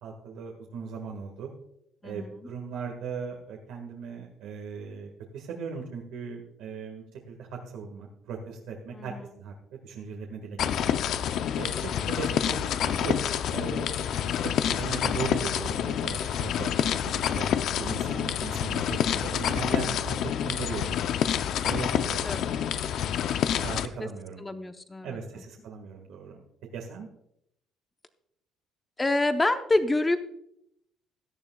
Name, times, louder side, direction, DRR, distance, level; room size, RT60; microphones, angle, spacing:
voice 1, 0.0-1.5 2.0-9.5 9.8-11.0 11.6-17.5 17.8-21.0 21.6-23.0 23.5-24.4 25.0-26.4 26.7-27.1, right 5 dB, 90° right, 0 dB, 1.7 m, -38 dB
voice 2, 2.0-2.5 8.9-9.3 22.2-22.5 24.0-24.1 24.4-25.2 29.0-30.2, left 2 dB, 15° left, 9 dB, 0.7 m, -27 dB
sound 1, 10.6-23.9, left 9 dB, 65° left, 0.5 m, -28 dB
17.0 x 11.5 x 2.3 m, 0.78 s
cardioid pair, 135°, 0 cm